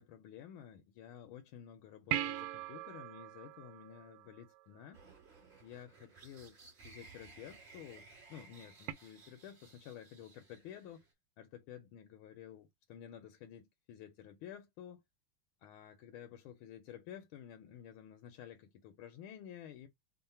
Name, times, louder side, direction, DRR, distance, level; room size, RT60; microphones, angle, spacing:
voice 1, 0.0-5.0 5.6-6.6 6.8-11.1 11.4-15.0 15.6-19.9, left 10 dB, 80° left, 1.4 m, -52 dB
sound 1, 2.1-4.8 8.9-9.0, right 12 dB, 85° right, 1.5 m, -40 dB
sound 2, 4.9-11.1, right 4 dB, 35° right, 1.3 m, -58 dB
3.8 x 2.1 x 4.1 m
omnidirectional pair, 2.4 m